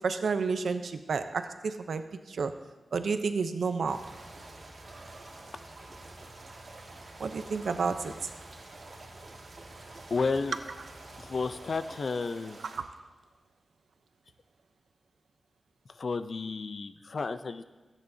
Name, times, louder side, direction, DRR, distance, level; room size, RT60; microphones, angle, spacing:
voice 1, 0.0-2.6 2.9-4.1 7.2-8.3 12.7-13.0, right 5 dB, 90° right, 8 dB, 0.7 m, -31 dB
sound 1, 3.9-12.8, right 2 dB, 55° right, 2.1 m, -48 dB
voice 2, 10.1-10.6 11.2-12.6 15.9-17.6, left 4 dB, 50° left, 11 dB, 0.5 m, -32 dB
26.0 x 9.2 x 2.8 m, 1.3 s
wide cardioid pair, 150°, 0 cm